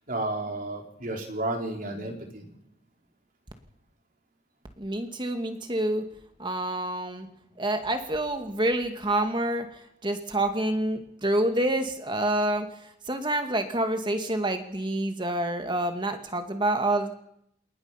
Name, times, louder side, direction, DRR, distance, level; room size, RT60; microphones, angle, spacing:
voice 1, 0.1-2.5, right 2 dB, 45° right, 2 dB, 4.1 m, -32 dB
voice 2, 4.8-6.1 6.4-7.3 7.6-17.1, right 1 dB, 25° right, 6 dB, 2.1 m, -27 dB
28.0 x 19.0 x 5.9 m, 0.76 s
head